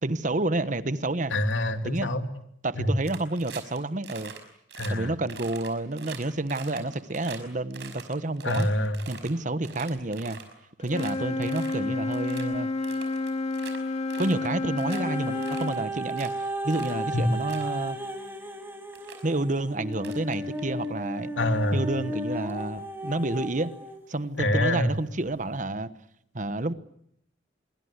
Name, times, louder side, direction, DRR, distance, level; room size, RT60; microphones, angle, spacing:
voice 1, 0.0-1.3 1.8-2.1 2.6-4.3 4.9-8.7 9.1-10.4 10.8-12.7 14.2-18.0 19.2-21.3 21.7-23.7 24.1-25.9 26.3-26.7, right 2 dB, 45° right, 1.2 m, -29 dB
voice 2, 1.3-2.3 2.8-2.9 4.8-5.1 8.4-9.0 17.1-17.2 21.4-21.8 24.4-24.9, left 1 dB, 85° left, 2.9 m, -25 dB
sound 1, 3.0-3.8 4.0-4.4 4.7-4.9 5.3-7.4 7.7-9.3 9.6-10.5 10.8-11.1 11.4-11.8 12.1-12.4 12.8-13.8 14.1-14.5 14.8-15.0 15.4-16.3 16.7-17.0 17.3-17.7 18.5-18.6 18.9-19.2 19.9-20.9, right 7 dB, 65° right, 5.4 m, -43 dB
Wind instrument woodwind instrument, 10.8-15.8, left 3 dB, 35° left, 2.6 m, -30 dB
sound 2, 14.9-24.0 24.7-24.8, right 1 dB, 10° right, 3.8 m, -35 dB
26.5 x 23.0 x 8.2 m
head